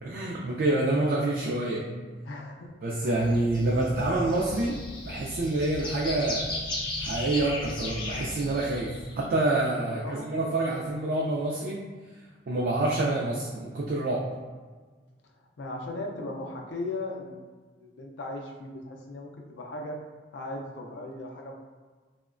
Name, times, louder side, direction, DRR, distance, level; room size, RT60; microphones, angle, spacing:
voice 1, 0.0-1.9 2.8-6.5 7.0-11.8 12.5-14.3, right 2 dB, 55° right, -3 dB, 0.3 m, -27 dB
voice 2, 2.2-2.7 3.0-3.9 9.8-10.3 15.6-17.4 17.8-20.0 20.3-21.5, left 2 dB, 85° left, 1 dB, 0.4 m, -38 dB
sound 1, 3.2-9.3, left 1 dB, 25° left, 0.5 m, -36 dB
2.9 x 2.1 x 2.4 m, 1.4 s
head